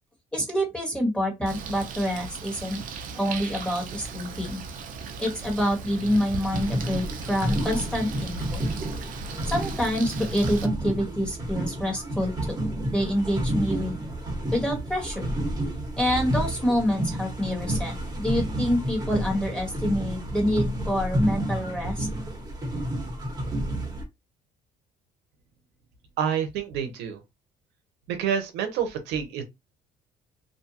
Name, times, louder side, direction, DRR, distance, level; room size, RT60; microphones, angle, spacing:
voice 1, 0.3-2.8 3.1-4.6 5.2-8.6 9.5-12.6 12.9-14.0 14.5-15.2 16.0-22.1, equal, 5° left, 1.4 m, -27 dB
Bird, 1.5-10.7, right 5 dB, 55° right, 0.5 m, -37 dB
sound 1, 6.5-24.0, right 1 dB, 25° right, 1.1 m, -30 dB
voice 2, 26.2-27.2 28.1-29.4, right 8 dB, 90° right, 0.7 m, -28 dB
2.6 x 2.3 x 2.8 m
cardioid pair, 110°, 17 cm